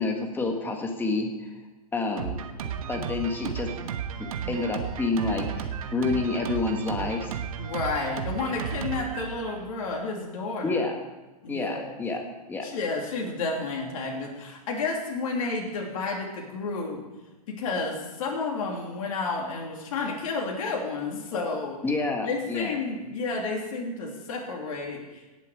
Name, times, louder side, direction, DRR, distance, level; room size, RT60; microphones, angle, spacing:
voice 1, 0.0-1.6 1.9-2.4 2.9-3.7 4.2-7.4 10.6-10.9 11.5-12.2 12.5-12.7 21.8-22.8, left 3 dB, 10° left, 3 dB, 1.6 m, -28 dB
Drum kit, 2.2-10.0, right 8 dB, 65° right, 1.3 m, -34 dB
voice 2, 7.6-10.8 11.4-12.0 12.6-17.0 17.5-21.8 22.2-25.2, left 3 dB, 60° left, 0 dB, 2.8 m, -31 dB
17.5 x 7.5 x 4.8 m, 1.1 s
hypercardioid pair, 115°, 20 cm